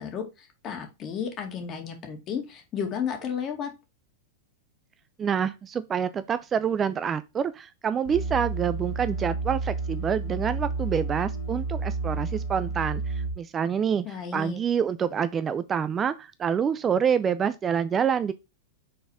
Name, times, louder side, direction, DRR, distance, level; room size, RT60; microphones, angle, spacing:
voice 1, 0.0-3.7 14.0-14.6, left 7 dB, 35° left, 2.2 m, -33 dB
voice 2, 5.2-14.0 14.3-18.3, right 7 dB, 25° right, 0.4 m, -27 dB
sound 1, 8.1-13.3, right 3 dB, 85° left, 2.3 m, -31 dB
5.8 x 4.0 x 4.8 m
hypercardioid pair, 105°, 0 cm